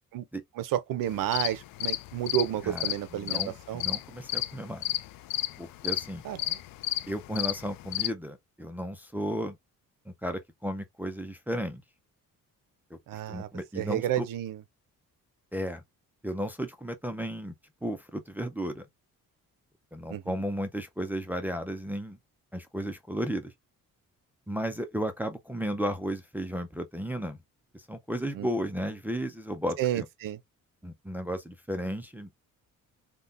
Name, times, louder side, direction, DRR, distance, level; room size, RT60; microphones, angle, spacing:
voice 1, 0.6-3.4 3.7-3.8 6.2-6.6 13.1-13.5 13.8-14.6 20.1-20.4 28.3-28.5 29.8-30.4, right 11 dB, 75° right, 0.6 m, -31 dB
sound 1, 1.1-8.1, left 15 dB, 90° left, 0.5 m, -32 dB
voice 2, 2.6-4.9 5.6-6.2 7.1-9.6 10.1-11.8 13.3-14.3 15.5-15.8 16.2-17.5 17.8-18.9 19.9-22.2 22.5-23.5 24.5-27.4 27.7-30.1 30.8-32.3, equal, 5° right, 0.3 m, -34 dB
3.6 x 2.2 x 2.5 m
cardioid pair, 155°, 33 cm